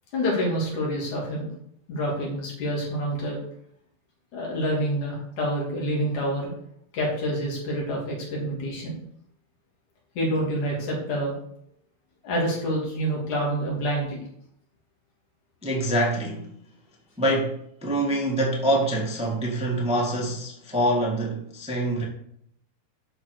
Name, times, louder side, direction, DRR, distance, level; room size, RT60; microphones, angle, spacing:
voice 1, 0.1-1.5 1.9-3.4 4.3-6.5 6.9-9.0 10.2-11.3 12.2-14.2, equal, 80° left, 4.4 m, -27 dB
voice 2, 15.6-16.5 17.2-22.0, right 1 dB, 5° right, 1.3 m, -25 dB
11.5 x 4.7 x 6.4 m
omnidirectional pair, 3.4 m